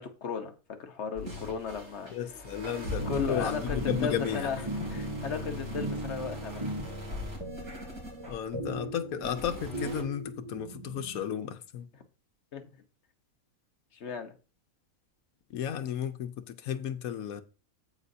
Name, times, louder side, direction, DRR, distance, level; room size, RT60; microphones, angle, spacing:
voice 1, 0.0-2.1 3.1-6.6 12.5-12.7 13.9-14.4, left 6 dB, 55° left, 1.3 m, -36 dB
sound 1, 1.1-8.6 9.1-10.0, left 1 dB, 90° right, 3.8 m, -40 dB
voice 2, 2.1-4.5 8.2-11.9 15.5-17.4, left 9 dB, 85° left, 1.2 m, -33 dB
sound 2, 3.0-11.2, right 2 dB, 30° right, 0.7 m, -39 dB
14.0 x 5.2 x 2.8 m
omnidirectional pair, 1.5 m